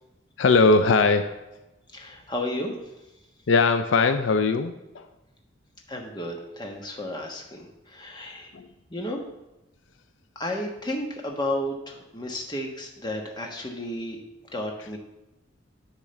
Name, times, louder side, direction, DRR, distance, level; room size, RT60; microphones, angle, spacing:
voice 1, 0.4-1.4 3.5-5.1 8.5-8.7, left 3 dB, 75° left, 9 dB, 0.5 m, -20 dB
voice 2, 1.9-2.7 5.9-8.5 8.9-9.3 10.3-14.2 14.5-15.0, left 1 dB, 20° left, 1 dB, 1.2 m, -32 dB
10.0 x 3.8 x 6.5 m, 0.97 s
head